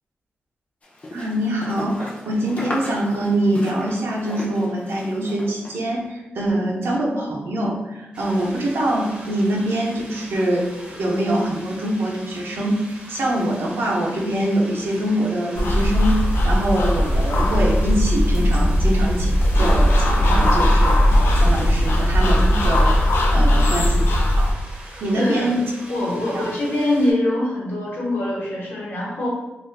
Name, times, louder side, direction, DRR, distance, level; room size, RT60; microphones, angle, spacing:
sound 1, 0.8-5.8, left 1 dB, 35° left, 0.5 m, -34 dB
voice 1, 1.1-24.5 25.0-25.6 26.3-26.4, right 1 dB, 75° right, -2 dB, 0.6 m, -24 dB
sound 2, 8.1-27.1, right 1 dB, 25° right, 0.5 m, -42 dB
sound 3, 15.5-24.5, equal, 90° left, 0.4 m, -18 dB
voice 2, 23.3-23.7 25.1-25.5 25.9-29.3, left 1 dB, 75° left, -5 dB, 1.0 m, -24 dB
2.4 x 2.3 x 3.3 m, 1.0 s
wide cardioid pair, 180°, 4 cm